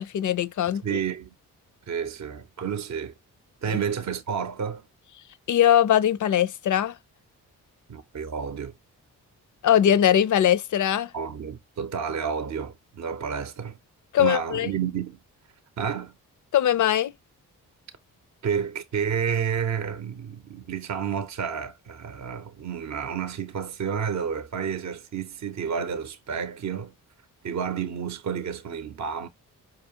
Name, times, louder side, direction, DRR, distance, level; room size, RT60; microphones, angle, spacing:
voice 1, 0.0-1.0 3.7-3.8 5.5-6.9 9.6-11.1 14.1-14.7 16.5-17.1, left 10 dB, 50° left, 0.5 m, -21 dB
voice 2, 0.8-1.3 1.9-3.1 3.6-4.8 7.9-8.7 11.1-13.8 14.2-15.2 15.8-16.1 18.4-26.9 27.4-29.3, right 7 dB, 45° right, 0.7 m, -30 dB
4.8 x 2.5 x 2.7 m
supercardioid pair, 45°, 40 cm